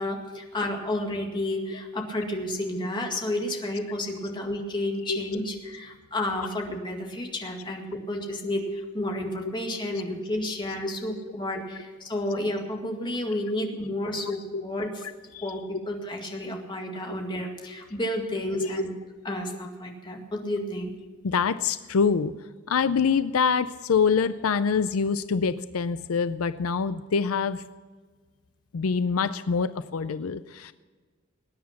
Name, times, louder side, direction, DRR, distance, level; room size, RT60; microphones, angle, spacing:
voice 1, 0.0-15.0 15.4-18.9 19.2-20.9, left 1 dB, 20° left, 2 dB, 2.0 m, -31 dB
voice 2, 14.2-14.6 15.3-15.5 18.6-18.8 21.2-22.3 22.7-27.6 28.7-30.7, left 5 dB, 80° left, 13 dB, 0.5 m, -25 dB
19.5 x 9.6 x 5.9 m, 1.4 s
head